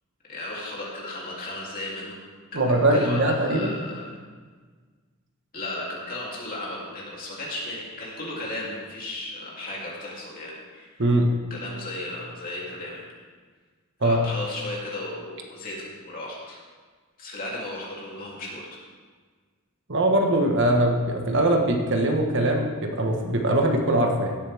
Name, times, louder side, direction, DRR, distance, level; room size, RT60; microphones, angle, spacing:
voice 1, 0.2-2.2 2.5-4.1 5.5-11.1 11.5-13.0 14.0-16.6 17.2-18.7, left 2 dB, 40° left, -5 dB, 3.0 m, -35 dB
voice 2, 2.5-3.8 11.0-11.3 14.0-14.2 19.9-24.4, right 1 dB, 55° right, 2 dB, 1.3 m, -22 dB
16.5 x 8.3 x 3.5 m, 1.5 s
head